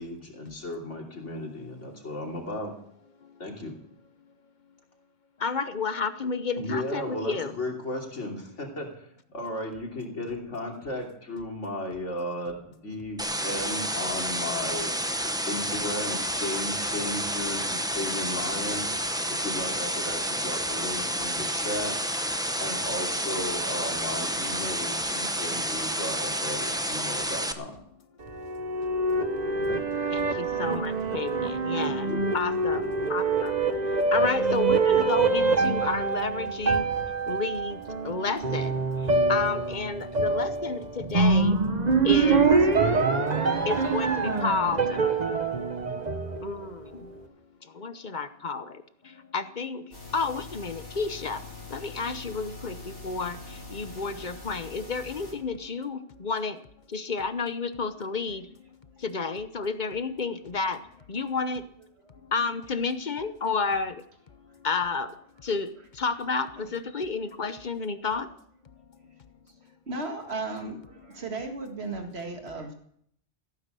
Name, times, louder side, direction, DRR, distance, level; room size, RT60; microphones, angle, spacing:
voice 1, 0.0-2.7 3.4-3.7 6.6-8.9 9.3-14.9 15.5-18.9 19.4-22.0 22.6-27.8 29.5-29.8 31.8-32.3, left 1 dB, 80° left, 0 dB, 3.4 m, -35 dB
voice 2, 5.4-7.5 30.1-32.1 32.3-33.5 34.1-36.8 37.3-38.8 39.3-41.6 42.0-42.5 43.7-45.0 46.4-47.1 47.8-48.8 49.3-49.8 50.1-51.4 51.7-56.6 56.9-58.5 59.0-60.8 61.1-61.6 62.3-64.0 64.6-65.1 65.4-65.7 66.0-68.3, left 4 dB, 45° left, 11 dB, 0.9 m, -31 dB
sound 1, 13.2-27.5, equal, 5° right, 0.8 m, -30 dB
sound 2, 28.2-46.8, right 4 dB, 35° right, 1.3 m, -25 dB
sound 3, 49.9-55.3, left 3 dB, 60° left, 4.1 m, -43 dB
voice 3, 69.9-72.7, right 3 dB, 60° right, 4 dB, 2.2 m, -35 dB
16.5 x 9.5 x 6.8 m, 0.68 s
omnidirectional pair, 1.2 m